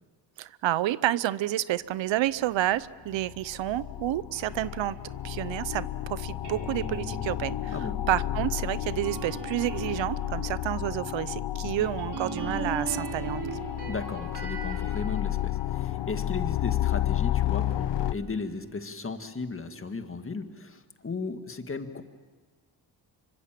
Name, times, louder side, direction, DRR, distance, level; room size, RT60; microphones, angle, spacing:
voice 1, 0.4-5.0 5.2-7.8 8.1-13.6, right 14 dB, 80° right, 18 dB, 0.8 m, -29 dB
sound 1, 2.7-2.8 3.1-18.1, left 13 dB, 70° left, 0.8 m, -32 dB
sound 2, 4.3-16.9 17.4-20.3, right 4 dB, 60° right, 4.8 m, -42 dB
voice 2, 13.9-22.0, left 4 dB, 30° left, 7 dB, 1.8 m, -36 dB
25.5 x 24.5 x 7.6 m, 1.3 s
cardioid pair, 100°, 44 cm